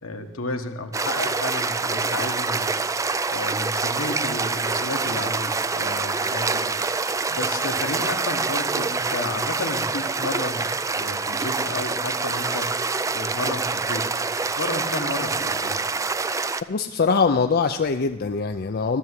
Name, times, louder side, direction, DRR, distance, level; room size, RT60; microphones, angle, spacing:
voice 1, 0.0-2.7 3.3-10.7 11.0-12.9 13.1-15.8, left 2 dB, 75° left, 5 dB, 1.3 m, -32 dB
sound 1, 0.9-16.6, right 4 dB, 15° right, 0.4 m, -26 dB
voice 2, 16.7-19.0, left 5 dB, 45° left, 7 dB, 0.5 m, -22 dB
13.5 x 7.1 x 9.5 m, 1.2 s
head